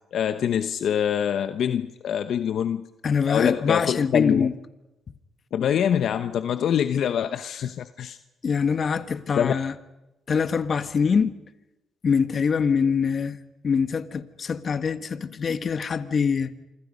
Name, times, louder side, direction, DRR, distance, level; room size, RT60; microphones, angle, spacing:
voice 1, 0.1-2.9 3.3-4.5 5.5-8.2 9.4-9.5, left 9 dB, 70° left, 0.9 m, -25 dB
voice 2, 3.0-4.5 8.4-9.7 10.3-11.3 12.0-13.4 13.6-16.5, left 6 dB, 45° left, 1.6 m, -24 dB
27.0 x 25.5 x 5.4 m
cardioid pair, 90°, 0 cm